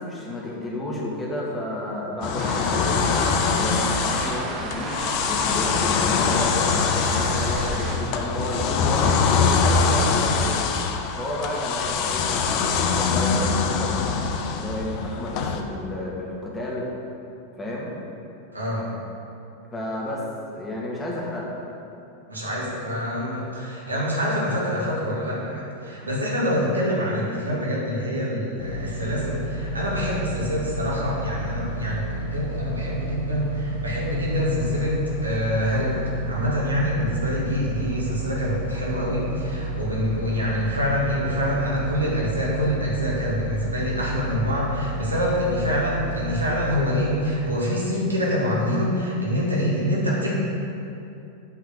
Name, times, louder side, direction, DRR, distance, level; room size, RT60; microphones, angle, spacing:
voice 1, 0.0-3.0 3.4-10.7 11.2-13.9 14.3-16.9 17.6-17.9 19.7-20.2 20.5-21.5, left 1 dB, 15° left, -4 dB, 2.2 m, -31 dB
sound 1, 2.2-15.6, left 5 dB, 45° left, 0.7 m, -23 dB
sound 2, 2.4-8.0, right 3 dB, 35° right, 1.2 m, -33 dB
voice 2, 18.5-18.8 22.3-50.3, equal, 80° right, -5 dB, 2.4 m, -26 dB
sound 3, 28.6-46.8, right 1 dB, 65° left, 1.4 m, -31 dB
8.4 x 5.7 x 6.8 m, 2.7 s
figure-of-eight pair, 90°, 0 cm